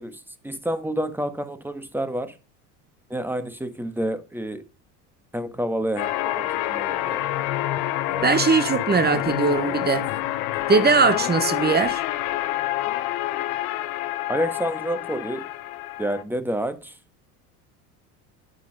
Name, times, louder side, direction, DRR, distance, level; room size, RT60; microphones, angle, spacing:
voice 1, 0.0-2.3 3.1-4.6 5.3-7.2 8.1-8.4 9.1-9.8 14.3-15.5 16.0-16.9, right 1 dB, 5° right, 1.5 m, -29 dB
sound 1, 6.0-16.2, left 15 dB, 75° left, 1.1 m, -27 dB
voice 2, 8.2-10.1 10.7-12.0, right 4 dB, 25° right, 1.1 m, -20 dB
9.2 x 6.7 x 5.2 m
hypercardioid pair, 85°, 40 cm